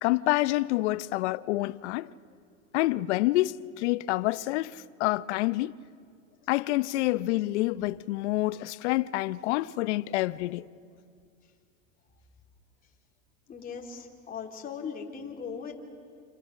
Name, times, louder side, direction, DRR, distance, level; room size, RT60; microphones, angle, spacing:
voice 1, 0.0-2.1 2.7-5.8 6.5-10.7, left 18 dB, 65° left, 0.7 m, -27 dB
voice 2, 13.5-15.7, left 6 dB, 25° left, 3.2 m, -39 dB
28.5 x 27.5 x 6.6 m
supercardioid pair, 120°, 37 cm